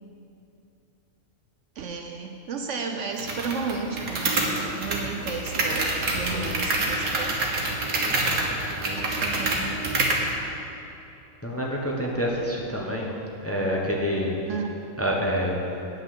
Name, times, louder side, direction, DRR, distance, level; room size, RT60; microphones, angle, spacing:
voice 1, 1.8-7.4 9.0-9.9 14.4-14.7, right 5 dB, 65° right, 4 dB, 0.9 m, -33 dB
sound 1, 3.2-10.3, right 2 dB, 85° right, 1.8 m, -27 dB
voice 2, 6.3-6.6 8.0-8.4 8.8-9.0 11.4-13.1 13.4-14.4 15.0-15.6, equal, 10° left, -2 dB, 1.0 m, -28 dB
9.2 x 6.4 x 7.7 m, 2.9 s
omnidirectional pair, 1.5 m